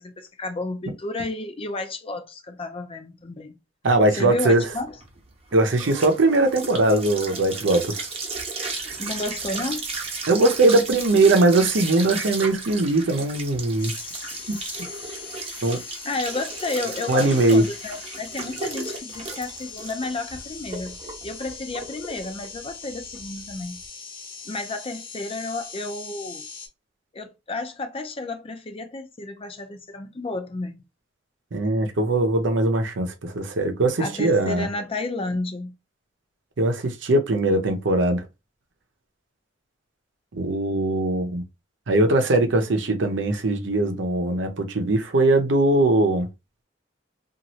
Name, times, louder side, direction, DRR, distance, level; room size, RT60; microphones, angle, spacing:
voice 1, 0.0-3.6 4.1-5.0 8.9-9.9 16.0-21.0 21.2-23.8 24.4-26.5 27.1-30.8 34.0-35.8, left 2 dB, 30° left, 0.5 m, -32 dB
voice 2, 3.8-4.7 5.5-8.1 10.3-13.9 14.5-14.6 15.6-15.8 17.1-17.6 31.5-34.7 36.6-38.2 40.3-41.4 41.9-46.3, right 2 dB, 80° right, 0.7 m, -20 dB
sound 1, 4.7-23.8, right 3 dB, 35° right, 0.9 m, -35 dB
sound 2, 13.8-26.7, left 5 dB, 50° left, 1.0 m, -40 dB
3.0 x 2.4 x 2.7 m
head